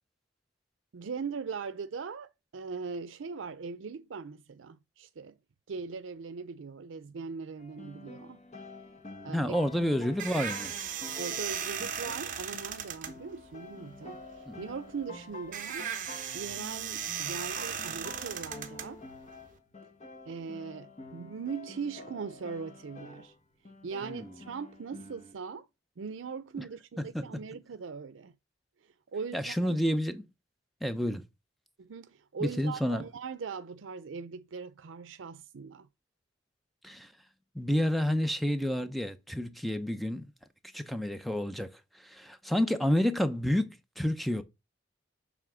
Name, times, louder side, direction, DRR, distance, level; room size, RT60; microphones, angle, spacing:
voice 1, 0.9-5.4 5.7-8.4 9.2-9.5 10.3-10.4 11.2-15.9 16.3-19.0 20.3-23.3 23.8-25.7 26.0-28.3 29.1-29.8 31.8-35.9, right 5 dB, 85° right, 0.5 m, -40 dB
sound 1, 7.6-23.4 23.6-25.3, left 3 dB, 35° left, 1.1 m, -48 dB
voice 2, 9.3-10.7 14.5-14.6 24.0-24.3 26.6-26.7 27.0-27.4 29.3-30.3 30.8-31.2 32.4-33.0 36.8-37.1 37.5-40.3 40.7-44.4, equal, ahead, 0.5 m, -30 dB
sound 2, 9.6-19.6, right 8 dB, 45° right, 0.9 m, -37 dB
7.0 x 3.4 x 6.0 m
head